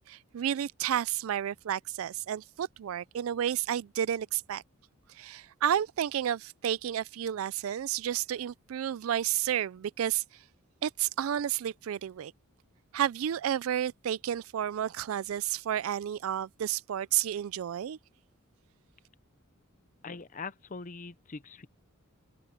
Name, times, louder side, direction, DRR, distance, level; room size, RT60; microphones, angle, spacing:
voice 1, 0.0-4.6 5.1-10.2 10.8-12.3 12.9-18.0, right 10 dB, 80° right, 0.4 m, -31 dB
voice 2, 20.0-21.7, left 4 dB, 40° left, 0.6 m, -42 dB
head